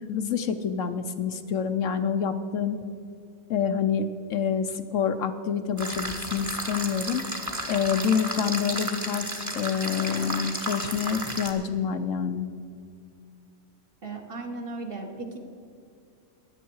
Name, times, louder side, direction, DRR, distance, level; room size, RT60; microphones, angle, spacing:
voice 1, 0.1-2.8 3.5-7.2 7.7-12.5, left 7 dB, 65° left, 9 dB, 1.0 m, -27 dB
sound 1, 5.8-11.5, right 1 dB, 15° right, 1.1 m, -33 dB
voice 2, 14.0-15.4, right 3 dB, 40° right, 2 dB, 1.5 m, -36 dB
16.5 x 11.0 x 4.6 m, 2.5 s
omnidirectional pair, 1.5 m